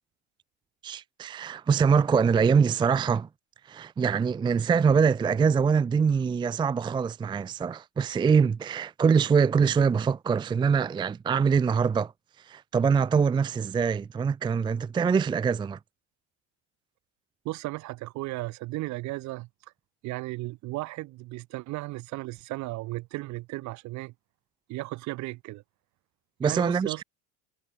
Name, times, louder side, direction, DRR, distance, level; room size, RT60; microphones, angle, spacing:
voice 1, 0.8-3.3 3.7-12.1 12.5-15.8 26.4-27.0, right 6 dB, 10° right, 0.6 m, -24 dB
voice 2, 17.4-19.5 20.0-24.1 24.7-25.6 26.4-27.0, right 20 dB, 50° right, 1.4 m, -35 dB
cardioid pair, 145°, 37 cm